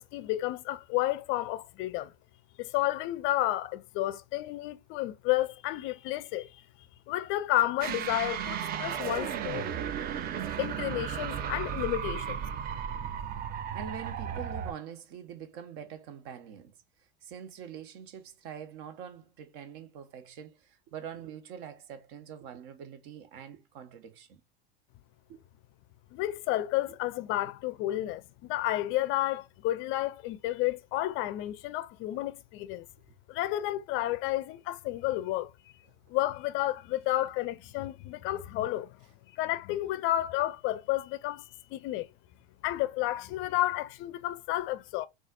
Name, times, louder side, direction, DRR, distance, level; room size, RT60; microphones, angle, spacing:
voice 1, 0.0-2.1 2.6-6.6 7.1-9.7 10.6-12.5 26.1-32.9 33.3-35.5 36.1-39.0 39.3-42.1 42.6-45.1, left 15 dB, 45° left, 0.4 m, -31 dB
sound 1, 7.8-14.7, right 8 dB, 30° right, 0.4 m, -34 dB
voice 2, 13.7-16.8 17.2-24.4 25.3-25.4 26.9-27.0, right 8 dB, 60° right, 0.8 m, -44 dB
4.0 x 2.4 x 2.4 m
hypercardioid pair, 95°, 30 cm